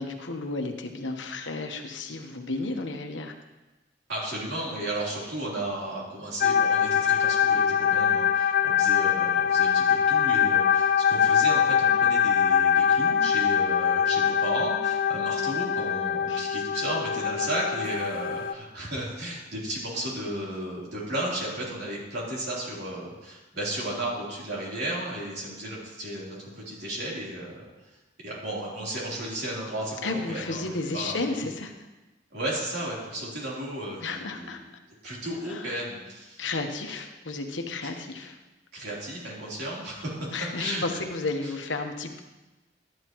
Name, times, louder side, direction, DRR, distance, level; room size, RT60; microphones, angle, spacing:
voice 1, 0.0-3.3 16.3-16.4 30.0-31.7 34.0-34.6 35.5-35.6 36.4-38.4 40.3-42.2, left 3 dB, 85° left, 4 dB, 1.1 m, -32 dB
voice 2, 4.1-27.6 28.2-31.2 32.3-34.6 35.0-36.4 38.7-40.3 40.6-40.8 41.4-41.5, right 1 dB, 65° right, -5 dB, 3.6 m, -34 dB
sound 1, 6.4-18.5, left 8 dB, 50° left, 0.4 m, -23 dB
12.5 x 10.5 x 3.1 m, 1.1 s
head